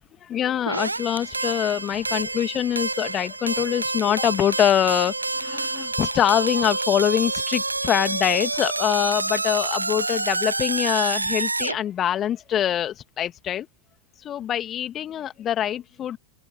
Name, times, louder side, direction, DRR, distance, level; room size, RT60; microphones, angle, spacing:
voice 1, 0.2-13.7 14.2-16.2, left 10 dB, 30° left, 2.1 m, -24 dB
sound 1, 0.7-11.8, right 2 dB, 80° right, 1.4 m, -28 dB
open air
figure-of-eight pair, 90°, 0 cm